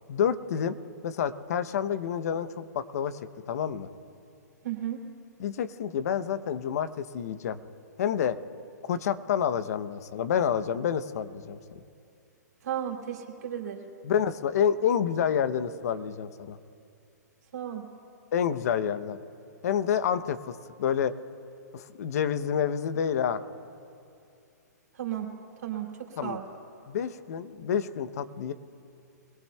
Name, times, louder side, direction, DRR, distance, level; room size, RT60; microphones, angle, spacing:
voice 1, 0.1-0.8 1.0-3.2 3.5-3.9 5.4-7.6 8.0-8.4 8.8-11.6 14.0-16.6 18.3-19.2 19.6-21.1 21.7-23.4 26.2-26.4 26.9-28.5, left 8 dB, 60° left, 12 dB, 0.8 m, -28 dB
voice 2, 4.6-5.0 12.6-13.8 17.5-17.9 24.9-25.4 25.6-26.4, right 10 dB, 70° right, 0 dB, 3.0 m, -34 dB
24.0 x 18.5 x 2.3 m, 2.5 s
hypercardioid pair, 135°, 9 cm